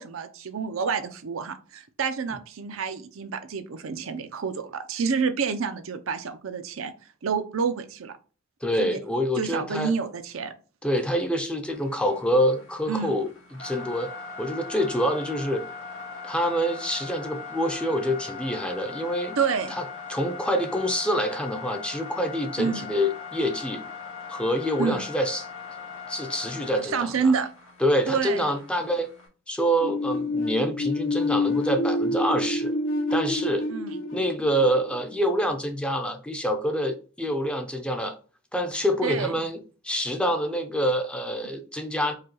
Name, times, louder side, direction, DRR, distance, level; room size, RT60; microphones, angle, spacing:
voice 1, 0.0-6.9 7.2-8.2 8.8-9.0 9.4-10.5 12.9-13.1 19.4-19.8 22.6-22.9 24.8-25.0 26.8-27.5 28.1-28.4 33.7-34.0 39.0-39.3, right 5 dB, 90° right, 0.6 m, -28 dB
voice 2, 8.6-9.9 10.8-14.1 14.4-15.6 16.2-19.4 19.7-19.8 20.1-23.8 24.3-25.5 26.1-27.3 27.8-29.1 29.5-32.7 33.1-33.6 34.1-38.2 38.5-42.1, equal, 5° left, 0.4 m, -26 dB
sound 1, 11.7-29.3, left 4 dB, 90° left, 1.5 m, -40 dB
sound 2, 29.8-35.5, left 2 dB, 70° left, 0.5 m, -27 dB
4.8 x 2.3 x 2.9 m
head